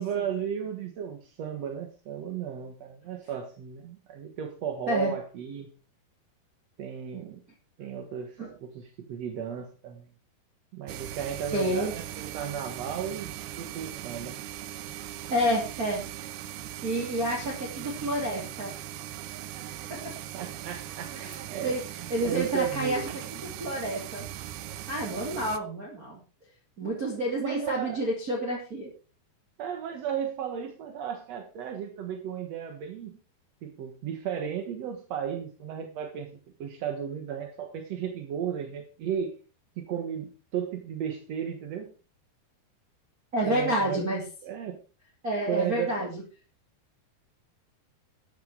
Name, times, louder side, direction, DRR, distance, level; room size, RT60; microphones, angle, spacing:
voice 1, 0.0-5.7 6.8-7.4 7.8-10.1 10.7-14.4 19.9-20.0 20.3-21.1 21.5-21.8 22.2-23.2 27.3-28.0 29.6-33.2 33.6-39.3 39.8-41.9 43.4-44.0 44.4-44.8 45.5-45.9, right 8 dB, 60° right, 5 dB, 1.9 m, -34 dB
sound 1, 10.9-25.6, right 12 dB, 80° right, 2.7 m, -39 dB
voice 2, 11.5-11.9 15.3-16.0 16.8-18.8 19.9-20.1 21.1-21.8 22.1-23.0 23.3-24.3 24.9-26.2 26.8-28.9 43.3-44.2 45.2-46.1, right 1 dB, 25° right, -2 dB, 2.8 m, -29 dB
12.5 x 9.5 x 4.7 m, 0.34 s
omnidirectional pair, 4.5 m